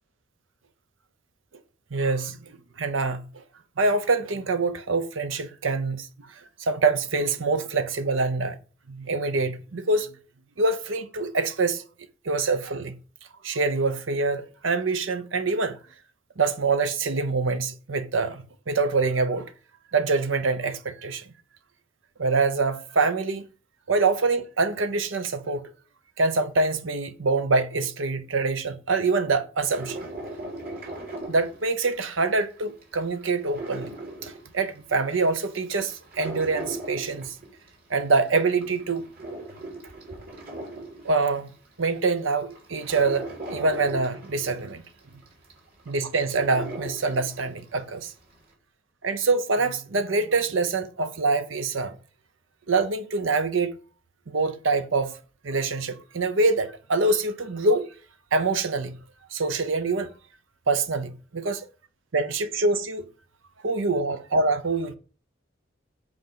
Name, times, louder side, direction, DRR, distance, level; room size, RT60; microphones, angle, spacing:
voice 1, 1.9-3.4 3.8-6.1 6.6-8.6 8.9-10.1 10.6-11.8 12.2-13.0 13.4-15.8 16.4-19.5 19.9-21.3 22.2-23.4 23.9-25.6 26.2-30.0 31.3-33.9 34.2-37.4 37.9-39.1 41.0-41.5 41.8-44.8 45.9-48.1 49.0-51.9 52.7-53.7 54.3-55.2 55.4-57.9 58.3-59.0 59.3-60.1 60.7-61.6 62.1-63.1 63.6-65.0, right 3 dB, 80° right, 0.8 m, -25 dB
sound 1, 29.6-32.2 32.6-34.9 35.4-38.0 38.4-41.5 42.0-42.1 42.5-47.7 48.0-48.1, right 1 dB, 50° right, 3.0 m, -38 dB
7.9 x 4.5 x 5.6 m
head